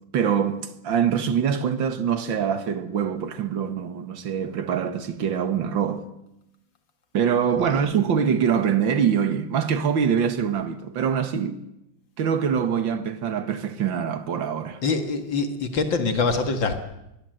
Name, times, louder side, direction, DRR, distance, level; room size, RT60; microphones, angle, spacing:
voice 1, 0.1-6.1 7.1-11.6 12.2-14.8, right 7 dB, 65° right, 2.2 m, -24 dB
voice 2, 14.8-16.8, left 4 dB, 65° left, 2.6 m, -24 dB
22.0 x 21.5 x 7.9 m
omnidirectional pair, 2.3 m